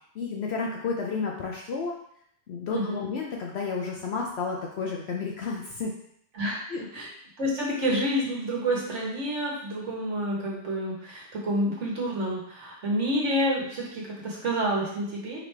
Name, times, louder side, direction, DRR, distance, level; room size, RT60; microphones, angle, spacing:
voice 1, 0.2-1.9 2.5-5.9 6.7-6.8, left 4 dB, 65° left, 0 dB, 0.7 m, -31 dB
voice 2, 2.7-3.1 6.3-6.6 6.9-7.1 7.4-15.4, equal, 60° right, -4 dB, 1.5 m, -28 dB
4.8 x 3.2 x 3.3 m, 0.69 s
omnidirectional pair, 1.5 m